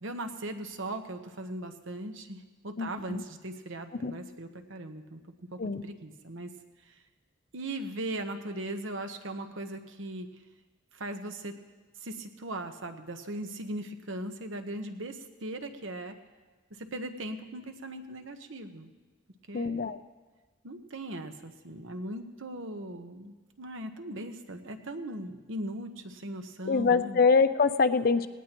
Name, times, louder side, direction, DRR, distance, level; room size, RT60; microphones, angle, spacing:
voice 1, 0.0-5.2 5.5-6.5 6.9-7.0 7.5-10.3 10.9-11.6 12.0-16.1 16.8-18.9 19.5-19.8 20.6-27.2, right 1 dB, 75° right, 7 dB, 1.1 m, -39 dB
voice 2, 2.8-3.2 4.0-4.1 5.6-5.8 19.5-20.0 26.7-28.3, left 5 dB, 45° left, 12 dB, 0.5 m, -24 dB
19.0 x 17.5 x 3.0 m, 1.3 s
head